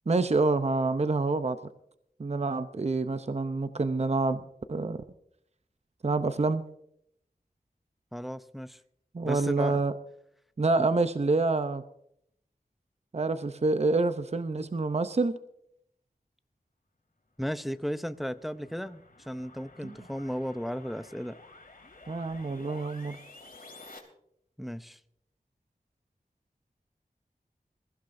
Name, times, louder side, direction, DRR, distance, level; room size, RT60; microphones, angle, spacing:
voice 1, 0.1-1.6 2.2-4.4 4.7-5.0 6.0-6.6 9.1-9.9 10.6-11.8 13.1-15.4 19.8-19.9 22.1-23.2, right 3 dB, 45° right, 10 dB, 0.6 m, -27 dB
voice 2, 8.1-8.8 9.2-9.8 10.8-10.9 17.4-21.4 24.6-25.0, equal, ahead, 12 dB, 0.6 m, -35 dB
sound 1, 17.6-24.0, left 2 dB, 65° left, 3.2 m, -52 dB
21.5 x 15.0 x 2.6 m, 0.73 s
wide cardioid pair, 65°, 16 cm